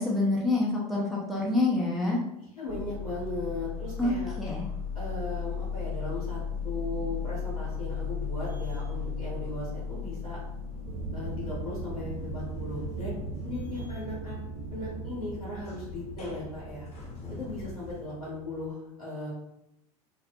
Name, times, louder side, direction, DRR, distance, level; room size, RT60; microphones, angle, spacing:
voice 1, 0.0-2.2 4.0-4.7, left 2 dB, ahead, -4 dB, 0.5 m, -27 dB
voice 2, 2.6-4.3 4.9-10.4 11.1-13.1 13.4-16.9 17.3-19.3, left 2 dB, 85° left, -9 dB, 0.8 m, -37 dB
sound 1, 2.7-18.0, left 5 dB, 35° left, 0.8 m, -37 dB
sound 2, 10.9-18.7, right 4 dB, 40° right, 0.8 m, -39 dB
2.5 x 2.0 x 2.6 m, 0.81 s
figure-of-eight pair, 75°, 19 cm